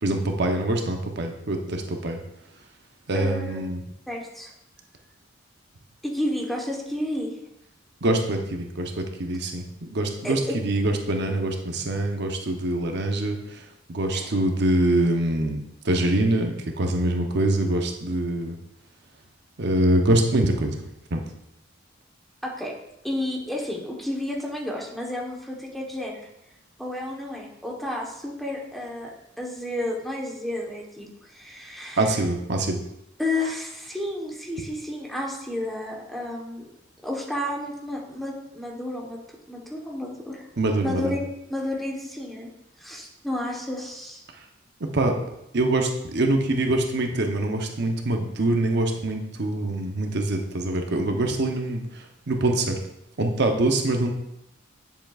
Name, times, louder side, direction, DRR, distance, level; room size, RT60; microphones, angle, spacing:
voice 1, 0.0-2.2 3.1-3.8 8.0-13.6 13.9-15.6 15.8-18.5 19.6-20.8 21.1-21.2 32.0-32.8 40.6-41.1 44.9-45.1 45.5-52.8 53.2-54.1, right 1 dB, 60° right, 3 dB, 0.9 m, -24 dB
voice 2, 3.1-3.6 4.1-4.5 6.0-7.3 10.2-10.6 14.1-14.3 22.4-22.7 23.0-26.2 26.8-32.2 33.2-36.7 37.0-39.2 39.5-40.5 40.8-41.2 41.5-42.5 42.8-44.2, left 1 dB, ahead, -2 dB, 1.1 m, -31 dB
10.5 x 7.0 x 2.4 m, 0.83 s
head